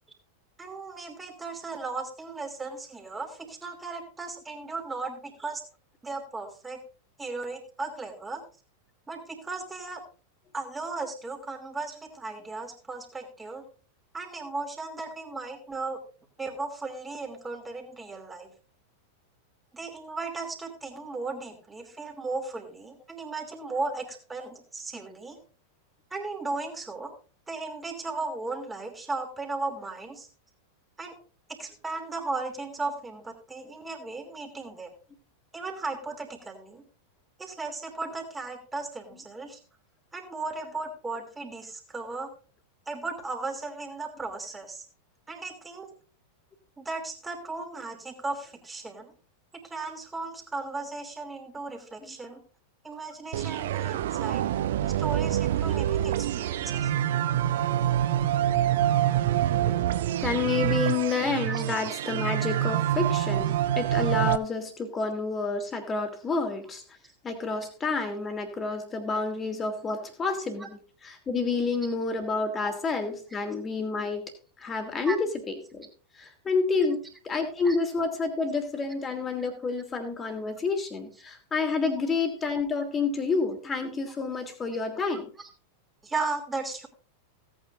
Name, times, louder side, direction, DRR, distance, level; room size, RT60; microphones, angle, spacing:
voice 1, 0.6-5.6 6.0-6.8 7.2-8.4 9.1-10.0 10.5-13.6 14.1-16.0 16.4-18.5 19.7-25.4 26.1-27.1 27.5-30.3 31.0-31.2 31.5-34.9 35.5-36.8 37.4-39.6 40.1-42.3 42.9-44.9 45.3-45.9 46.8-49.1 49.5-52.4 52.8-54.4 54.8-56.9 60.8-61.0 61.5-61.6 70.6-70.7 72.6-72.8 75.0-75.2 76.9-77.0 77.6-77.8 85.4-85.5 86.0-86.9, right 3 dB, 10° right, 3 dB, 3.0 m, -36 dB
sound 1, 53.3-64.4, right 12 dB, 55° right, 0.6 m, -26 dB
voice 2, 60.2-66.8 67.2-70.7 71.0-74.3 74.6-75.9 76.1-77.0 77.3-85.3, left 4 dB, 20° left, 6 dB, 2.8 m, -29 dB
17.0 x 9.2 x 2.6 m, 0.37 s
figure-of-eight pair, 90°, 0 cm